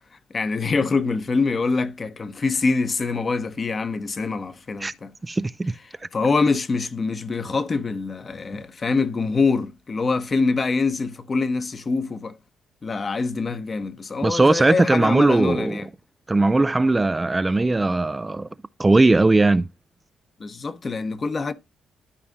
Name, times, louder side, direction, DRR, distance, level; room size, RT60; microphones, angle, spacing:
voice 1, 0.3-5.1 6.1-12.3 12.8-15.9 20.4-21.5, left 4 dB, 35° left, 1.0 m, -24 dB
voice 2, 5.2-5.7 14.2-15.8 16.3-18.5 18.8-19.7, right 2 dB, 20° right, 0.3 m, -19 dB
13.0 x 4.9 x 2.6 m
cardioid pair, 90°, 0 cm